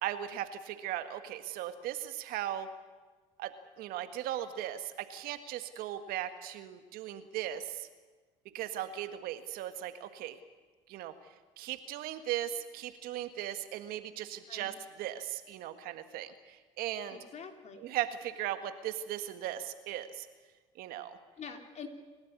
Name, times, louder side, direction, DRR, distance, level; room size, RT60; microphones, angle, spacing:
voice 1, 0.0-2.7 3.4-7.9 8.5-10.4 10.9-11.1 11.6-17.2 17.8-20.3 20.8-21.2, right 12 dB, 70° right, 9 dB, 1.6 m, -38 dB
voice 2, 17.1-17.9 21.4-21.9, left 6 dB, 45° left, 4 dB, 3.5 m, -46 dB
29.0 x 12.5 x 9.6 m, 1.3 s
supercardioid pair, 75°, 16 cm